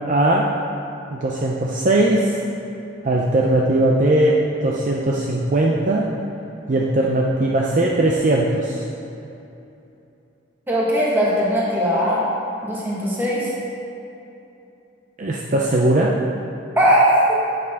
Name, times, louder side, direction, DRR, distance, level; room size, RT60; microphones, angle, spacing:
voice 1, 0.1-0.5 1.1-2.4 3.0-6.1 6.7-8.8 15.2-16.1, right 1 dB, 40° right, -3 dB, 0.5 m, -19 dB
voice 2, 10.7-12.2 12.6-13.5 16.8-17.4, equal, 10° right, -7 dB, 1.5 m, -19 dB
8.4 x 6.6 x 3.5 m, 2.8 s
head